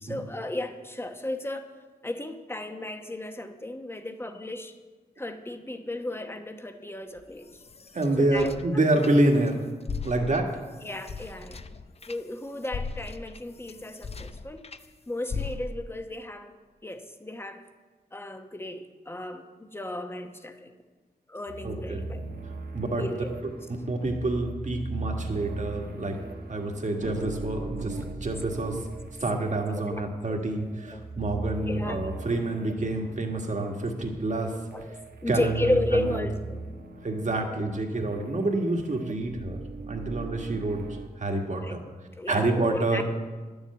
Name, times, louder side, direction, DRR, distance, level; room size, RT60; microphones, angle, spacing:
voice 1, 0.0-1.7 2.0-4.8 5.2-7.5 8.2-8.5 10.8-11.6 12.1-14.7 15.1-16.5 16.8-17.6 18.1-20.7 21.3-22.2 22.9-23.3 28.0-28.1 29.7-30.0 30.3-30.4 30.9-31.1 31.6-32.1 34.7-35.0 35.2-36.6 41.6-41.8 42.2-43.0, left 1 dB, 15° left, 7 dB, 1.0 m, -34 dB
sound 1, 7.2-9.5 9.8-14.9 15.3-16.0, left 4 dB, 40° left, 0.6 m, -38 dB
voice 2, 7.9-9.6 10.0-10.6 21.6-22.1 22.7-23.1 23.9-26.2 26.5-28.9 29.2-34.6 35.3-36.3 37.0-39.6 39.9-40.9 41.2-41.8 42.3-43.0, right 2 dB, 50° right, 2 dB, 1.8 m, -27 dB
sound 2, 21.5-41.1, right 3 dB, 70° right, 1.2 m, -39 dB
11.5 x 7.2 x 8.4 m, 1.3 s
wide cardioid pair, 115°, 16 cm